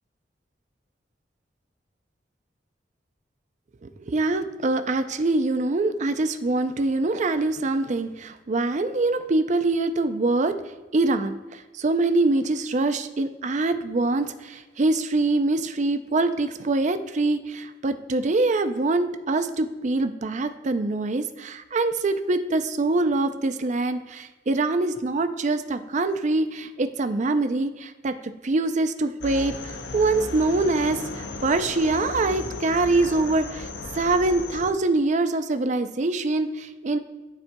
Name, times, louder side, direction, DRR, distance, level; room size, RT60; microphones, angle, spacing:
voice 1, 3.8-10.5 10.9-11.4 11.8-28.1 28.4-29.5 29.9-31.0 31.4-33.7 33.9-37.0, right 2 dB, 40° right, 9 dB, 0.5 m, -24 dB
sound 1, 29.2-34.7, left 3 dB, 80° left, 0.6 m, -35 dB
12.0 x 4.3 x 2.2 m, 1.2 s
head